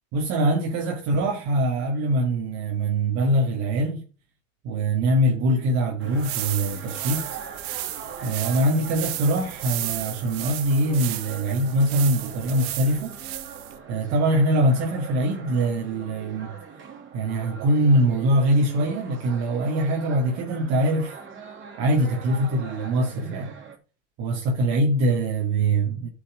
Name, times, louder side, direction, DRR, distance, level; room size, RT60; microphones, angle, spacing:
voice 1, 0.1-4.0 4.6-7.4 8.2-13.2 13.9-16.5 17.1-21.2 21.8-23.5 24.2-26.1, right 1 dB, 55° right, 2.4 m, -23 dB
sound 1, 6.0-23.8, right 6 dB, 40° right, 3.8 m, -42 dB
sound 2, 6.0-13.8, right 14 dB, 70° right, 1.6 m, -34 dB
10.0 x 6.3 x 5.1 m
supercardioid pair, 105°, 32 cm